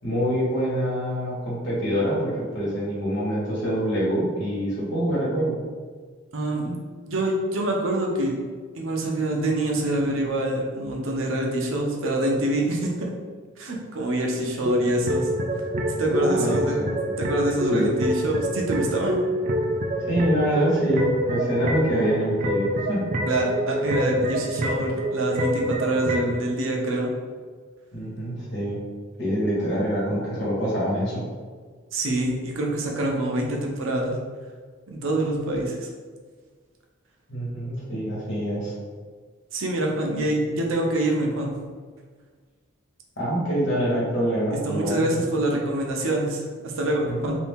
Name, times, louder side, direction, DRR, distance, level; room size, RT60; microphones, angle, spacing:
voice 1, 0.0-5.6 16.2-16.9 17.7-17.9 20.0-23.1 27.9-28.8 29.2-31.2 37.3-38.7 43.2-45.2 47.1-47.3, equal, 60° left, -7 dB, 1.3 m, -25 dB
voice 2, 6.3-6.8 7.1-8.4 8.8-13.1 13.6-15.3 16.0-16.8 17.2-19.2 23.3-27.1 31.9-34.1 34.9-35.9 39.5-41.5 44.5-47.3, right 1 dB, 85° right, 0 dB, 0.6 m, -25 dB
sound 1, 14.7-26.4, equal, 40° right, 0.3 m, -26 dB
2.7 x 2.6 x 3.5 m, 1.5 s
head